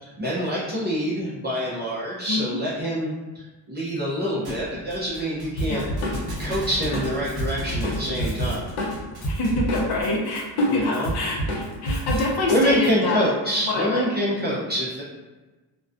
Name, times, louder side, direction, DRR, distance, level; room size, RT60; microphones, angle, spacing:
voice 1, 0.0-5.8 6.4-8.7 10.7-11.1 12.5-15.0, equal, 25° right, -8 dB, 0.4 m, -26 dB
voice 2, 2.3-2.6 5.7-5.8 9.3-11.4 11.8-13.3 13.7-14.1, left 2 dB, 50° left, -1 dB, 0.5 m, -25 dB
Thump thud, 4.4-10.0, left 1 dB, 50° right, 0.7 m, -35 dB
Drum kit, 5.6-10.1 10.3-12.9, equal, 80° left, 0.8 m, -28 dB
2.3 x 2.2 x 2.4 m, 1.2 s
cardioid pair, 165°, 49 cm